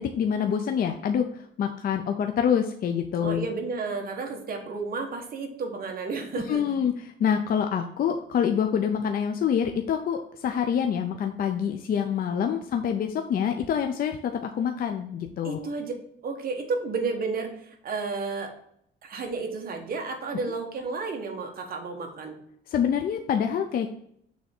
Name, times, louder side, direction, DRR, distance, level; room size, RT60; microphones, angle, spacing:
voice 1, 0.0-3.5 6.5-15.7 22.7-23.9, left 8 dB, 45° left, 5 dB, 0.5 m, -26 dB
voice 2, 3.2-6.8 15.4-15.9 16.2-18.5 19.0-22.4, right 4 dB, 45° right, 2 dB, 1.2 m, -32 dB
6.4 x 3.5 x 4.3 m, 0.70 s
cardioid pair, 140°, 20 cm